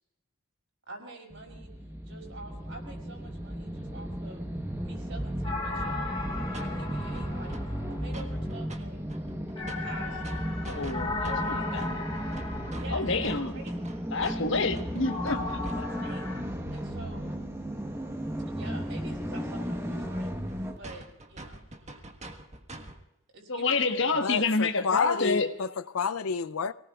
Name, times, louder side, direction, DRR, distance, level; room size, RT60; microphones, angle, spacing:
voice 1, 0.9-1.7 2.1-4.4 4.8-6.2 6.5-7.6 7.9-9.1 9.6-10.2 11.2-11.7 12.7-13.8 14.1-14.3 14.5-14.7 14.9-15.2 15.6-16.3 16.7-17.3 18.5-20.3 20.7-21.8 23.3-24.2, right 2 dB, 60° right, 5.7 m, -47 dB
sound 1, 1.3-20.8, equal, 10° right, 1.1 m, -35 dB
sound 2, 5.4-8.3 9.6-13.4 15.0-16.4, left 3 dB, 25° left, 3.2 m, -37 dB
sound 3, 6.3-6.7 6.9-7.7 7.9-8.8 9.1-16.0 19.3-19.4 19.7-19.8 20.1-20.2 20.5-20.6 20.8-23.0, right 1 dB, 30° right, 1.5 m, -44 dB
voice 2, 10.6-12.0 12.9-13.5 14.1-15.8 23.5-25.5, left 3 dB, 60° left, 1.3 m, -28 dB
voice 3, 24.2-26.7, left 5 dB, 85° left, 0.6 m, -30 dB
28.5 x 18.5 x 2.4 m
head